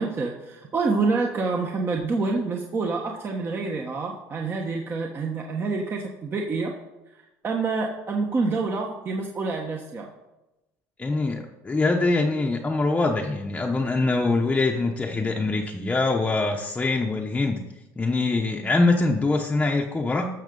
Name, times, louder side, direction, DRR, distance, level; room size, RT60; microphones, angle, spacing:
voice 1, 0.0-6.7 7.4-10.1, right 4 dB, 30° right, 1 dB, 1.2 m, -27 dB
voice 2, 11.0-17.6 18.0-20.3, left 3 dB, 15° left, 0 dB, 0.9 m, -23 dB
13.0 x 6.5 x 5.3 m, 0.99 s
cardioid pair, 115°, 7 cm